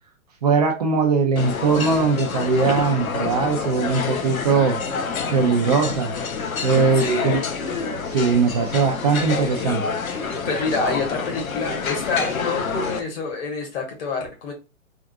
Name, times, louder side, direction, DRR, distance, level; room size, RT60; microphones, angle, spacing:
voice 1, 0.4-4.8 5.3-6.1 6.6-7.4 8.0-9.8, right 5 dB, 30° right, 0.4 m, -20 dB
sound 1, 1.4-13.0, left 5 dB, 85° left, 0.8 m, -27 dB
voice 2, 6.9-7.4 7.7-7.9 10.4-14.5, left 3 dB, 45° left, 1.6 m, -27 dB
3.6 x 2.5 x 2.4 m
hypercardioid pair, 135°, 41 cm